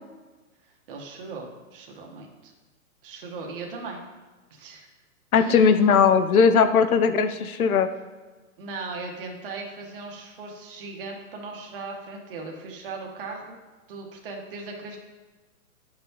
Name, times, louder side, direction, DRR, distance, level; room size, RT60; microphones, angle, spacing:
voice 1, 0.9-2.5 3.0-4.0 4.5-4.9 5.4-6.0 8.6-13.6 13.9-15.0, right 3 dB, 40° right, 0 dB, 1.1 m, -38 dB
voice 2, 5.3-7.9, left 6 dB, 80° left, 11 dB, 0.7 m, -19 dB
9.5 x 5.8 x 2.8 m, 1.3 s
hypercardioid pair, 165°, 43 cm